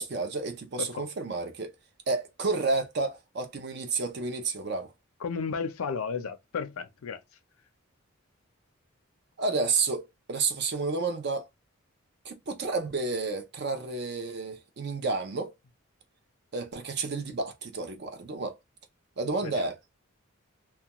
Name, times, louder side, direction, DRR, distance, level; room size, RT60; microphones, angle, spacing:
voice 1, 0.0-1.7 2.1-4.9 9.4-11.5 12.2-15.5 16.5-18.6 19.2-19.8, right 3 dB, 50° right, 0.5 m, -31 dB
voice 2, 5.2-7.2 19.4-19.7, left 5 dB, 85° left, 0.5 m, -33 dB
2.3 x 2.2 x 2.9 m
head